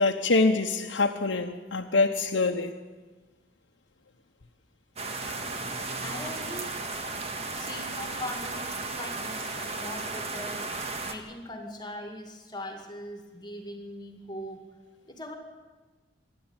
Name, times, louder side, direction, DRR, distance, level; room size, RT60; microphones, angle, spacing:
voice 1, 0.0-2.8 5.3-5.4, left 3 dB, 85° left, 1.0 m, -25 dB
sound 1, 5.0-11.1, right 3 dB, 35° right, 1.7 m, -35 dB
voice 2, 6.0-6.7 7.5-10.6 11.0-14.6 15.1-15.4, left 1 dB, 25° left, 2.2 m, -40 dB
26.5 x 11.0 x 9.0 m
head